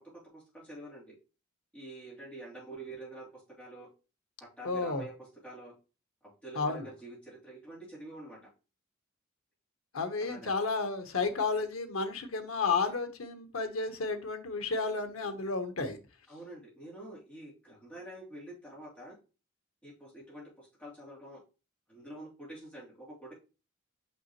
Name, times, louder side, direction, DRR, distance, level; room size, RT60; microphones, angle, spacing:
voice 1, 0.3-1.1 1.7-3.9 4.4-5.7 6.2-8.4 10.2-10.5 16.3-19.2 19.8-21.4 21.9-23.3, right 1 dB, 5° left, -7 dB, 3.2 m, -47 dB
voice 2, 4.6-5.1 6.5-6.9 9.9-16.0, left 4 dB, 85° left, 8 dB, 1.0 m, -32 dB
5.8 x 5.8 x 3.0 m, 0.32 s
head